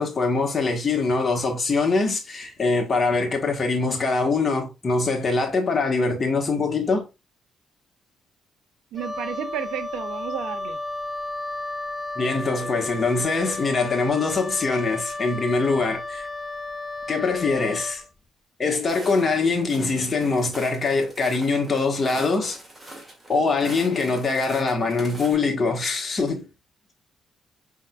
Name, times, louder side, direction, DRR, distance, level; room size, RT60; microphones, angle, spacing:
voice 1, 0.0-7.1 12.1-16.3 17.1-18.0 18.6-22.6 23.3-26.4, left 3 dB, 35° left, 1.4 m, -23 dB
Wind instrument woodwind instrument, 8.9-18.1, left 2 dB, 10° left, 0.5 m, -33 dB
voice 2, 8.9-10.8, right 10 dB, 90° right, 0.5 m, -32 dB
Walk footsteps, 18.9-25.3, right 1 dB, 15° right, 2.1 m, -42 dB
5.5 x 3.6 x 2.3 m
cardioid pair, 90°, 0 cm